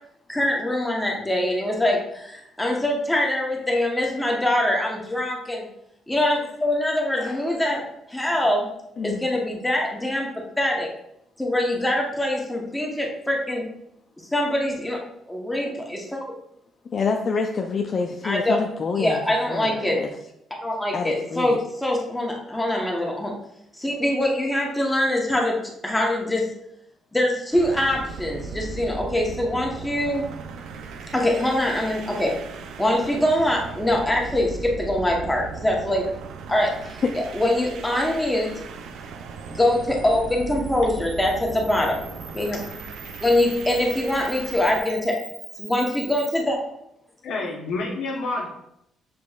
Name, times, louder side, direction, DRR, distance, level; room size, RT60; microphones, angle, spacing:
voice 1, 0.3-5.6 6.1-7.8 8.1-8.7 9.0-10.3 10.6-10.9 11.4-13.6 14.3-15.0 15.3-16.2 18.2-18.6 19.0-20.0 20.6-23.3 23.8-25.6 25.8-26.5 27.1-30.3 31.1-32.3 32.8-36.1 36.5-36.7 37.1-38.5 39.5-42.0 42.3-42.6 43.2-45.2 45.6-46.6, left 1 dB, 10° left, -1 dB, 0.9 m, -23 dB
voice 2, 7.1-7.4 47.2-48.5, left 3 dB, 75° left, -3 dB, 0.7 m, -29 dB
voice 3, 16.9-19.2 19.5-20.1 20.9-21.6 37.0-37.1, left 5 dB, 45° left, 3 dB, 0.4 m, -27 dB
sound 1, 27.5-44.9, right 4 dB, 80° right, 0.4 m, -37 dB
Camera, 39.4-46.4, right 4 dB, 50° right, 0.9 m, -43 dB
6.7 x 3.0 x 2.3 m, 0.78 s
cardioid pair, 100°, 0 cm